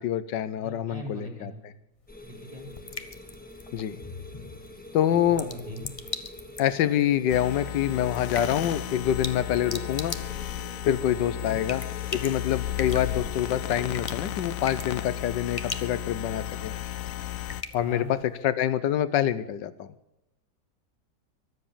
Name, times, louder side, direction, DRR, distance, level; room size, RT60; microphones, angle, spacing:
voice 1, 0.0-1.5 3.7-4.0 4.9-5.5 6.6-10.2 10.9-11.8 12.1-16.7 17.7-19.9, left 10 dB, 90° left, 15 dB, 1.5 m, -26 dB
voice 2, 0.6-1.5 2.2-2.7 5.3-5.9 11.3-11.6 17.8-18.1, left 1 dB, 20° right, 3 dB, 4.4 m, -39 dB
sound 1, 2.0-18.4, left 3 dB, 20° left, 1.1 m, -42 dB
sound 2, 2.1-13.9, left 1 dB, 5° left, 1.7 m, -46 dB
sound 3, 7.3-17.6, left 12 dB, 60° left, 1.0 m, -34 dB
23.5 x 8.0 x 7.3 m, 0.88 s
omnidirectional pair, 1.9 m